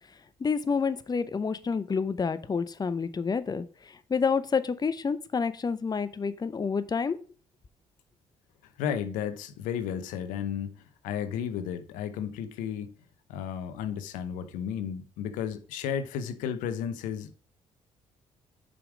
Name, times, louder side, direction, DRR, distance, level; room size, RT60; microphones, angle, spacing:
voice 1, 0.4-7.2, left 5 dB, 30° left, 0.7 m, -29 dB
voice 2, 8.8-12.9 13.3-17.4, left 8 dB, 85° left, 0.8 m, -33 dB
6.9 x 5.2 x 5.0 m
supercardioid pair, 65°, 13 cm